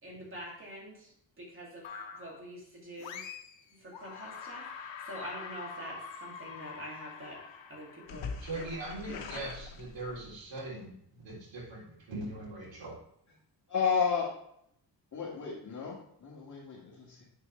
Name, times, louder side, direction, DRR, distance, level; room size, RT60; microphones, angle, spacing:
voice 1, 0.0-1.8 2.1-3.3 3.8-7.4 7.7-8.7 9.1-9.4, equal, 30° right, -3 dB, 2.7 m, -46 dB
sound 1, 1.8-2.4 3.0-3.6 3.9-10.4, left 6 dB, 85° left, 1.0 m, -44 dB
voice 2, 8.4-13.0, right 2 dB, 85° right, -6 dB, 3.4 m, -41 dB
voice 3, 13.7-14.3 15.1-17.2, left 6 dB, 40° left, -6 dB, 2.1 m, -32 dB
8.5 x 6.6 x 3.3 m, 0.71 s
cardioid pair, 135°, 43 cm